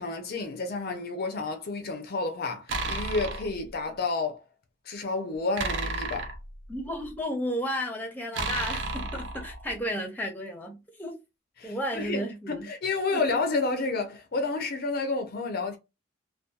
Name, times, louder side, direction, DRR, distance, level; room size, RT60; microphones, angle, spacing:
voice 1, 0.0-4.4 4.9-6.3 11.6-15.8, left 3 dB, 50° left, 0.5 m, -30 dB
sound 1, 2.7-3.6 5.6-7.1 8.3-9.8, right 2 dB, 60° right, 0.5 m, -32 dB
voice 2, 6.7-11.1 11.6-12.7 13.1-13.2, equal, 10° left, 0.7 m, -33 dB
2.7 x 2.2 x 2.2 m
head